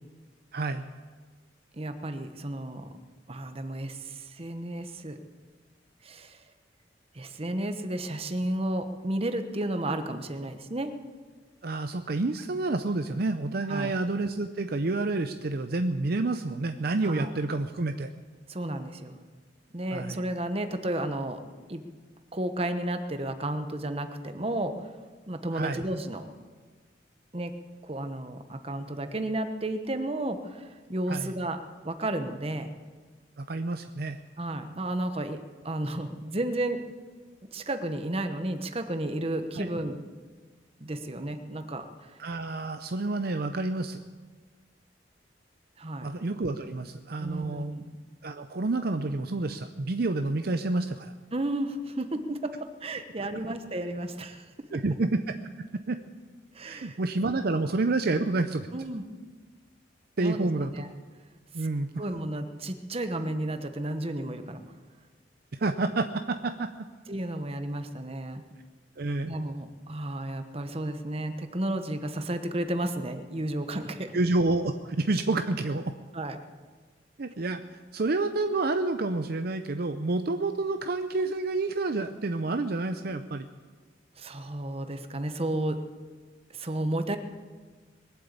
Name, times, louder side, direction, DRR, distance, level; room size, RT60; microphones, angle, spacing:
voice 1, 0.5-0.8 11.6-18.1 19.9-20.2 25.5-25.8 31.1-31.3 33.4-34.2 39.5-39.7 42.2-44.0 46.0-47.7 48.2-51.1 54.7-56.0 56.7-58.7 60.2-60.7 61.5-61.9 65.6-66.7 69.0-69.3 74.1-75.9 77.2-83.5, right 2 dB, 55° right, 8 dB, 0.6 m, -29 dB
voice 2, 1.7-2.9 3.3-5.2 6.0-6.4 7.1-10.9 13.7-13.9 17.0-17.3 18.5-19.2 19.7-21.4 21.7-21.8 22.3-24.9 25.3-26.3 27.3-27.5 27.8-31.6 31.8-32.7 34.4-36.8 37.5-40.0 40.8-42.2 45.8-46.1 47.2-47.9 51.3-54.5 56.5-57.0 58.7-59.0 60.2-60.9 61.6-61.7 62.0-64.6 67.1-68.4 69.2-74.1 76.1-76.4 84.2-85.8 86.5-87.2, right 1 dB, 30° right, 8 dB, 1.1 m, -32 dB
21.5 x 8.0 x 8.2 m, 1.4 s
head